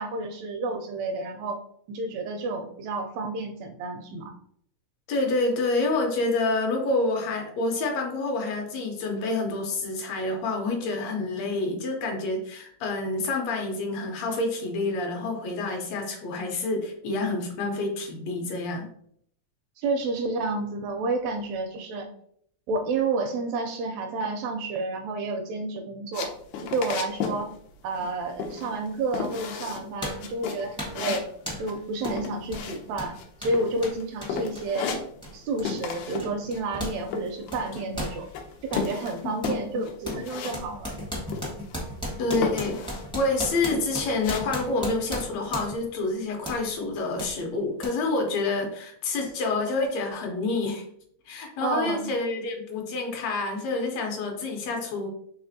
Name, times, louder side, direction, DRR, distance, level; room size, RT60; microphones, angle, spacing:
voice 1, 0.0-1.6 1.9-4.3 19.8-22.1 22.7-26.3 26.7-27.5 27.8-31.3 31.6-34.9 35.3-38.3 38.6-40.9 51.6-52.1, right 3 dB, 80° right, 4 dB, 1.6 m, -30 dB
voice 2, 5.1-18.9 39.4-39.5 39.7-39.8 42.2-42.8 43.1-50.8 51.3-55.1, left 3 dB, 75° left, 2 dB, 1.9 m, -28 dB
sound 1, 26.1-27.4 27.7-28.1 28.4-28.9 29.1-29.9 30.2-33.2 33.5-34.0 34.3-35.4 35.7-36.3 36.6-38.0 38.3-40.6 40.9-41.0 41.3-41.9 42.3-43.0 43.5-44.4, left 6 dB, 90° left, 2.1 m, -33 dB
sound 2, 29.1-29.3 30.0-30.3 30.8-31.1 31.5-31.7 32.0-32.2 32.5-37.0 37.3-38.9 39.4-39.6 40.0-45.9 46.4-46.6 47.2-47.3 47.8-47.9, equal, 5° left, 0.3 m, -36 dB
4.9 x 3.4 x 2.6 m, 0.67 s
omnidirectional pair, 3.4 m